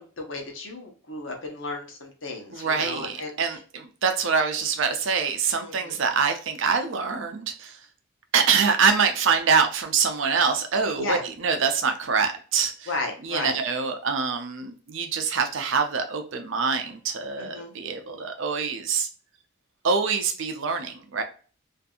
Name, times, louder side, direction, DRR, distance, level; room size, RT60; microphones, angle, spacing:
voice 1, 0.0-3.6 5.6-6.0 11.0-11.2 12.9-13.6 17.4-17.7, left 2 dB, 60° left, 2 dB, 0.8 m, -34 dB
voice 2, 2.5-7.8 8.3-12.9 13.2-19.1 19.8-21.2, right 5 dB, 60° right, 6 dB, 0.5 m, -25 dB
2.6 x 2.5 x 2.3 m, 0.38 s
head